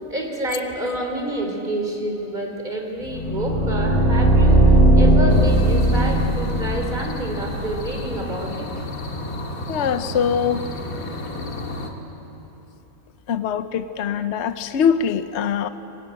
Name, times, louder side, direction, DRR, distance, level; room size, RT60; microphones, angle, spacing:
voice 1, 0.1-8.7, right 1 dB, 35° right, 2 dB, 3.6 m, -28 dB
sound 1, 3.0-8.0, right 1 dB, 25° left, 6.7 m, -17 dB
sound 2, 5.3-11.9, left 2 dB, 85° left, 2.4 m, -32 dB
voice 2, 9.7-10.6 13.3-15.7, left 7 dB, 60° left, 11 dB, 1.0 m, -22 dB
25.5 x 20.5 x 9.0 m, 3.0 s
omnidirectional pair, 1.4 m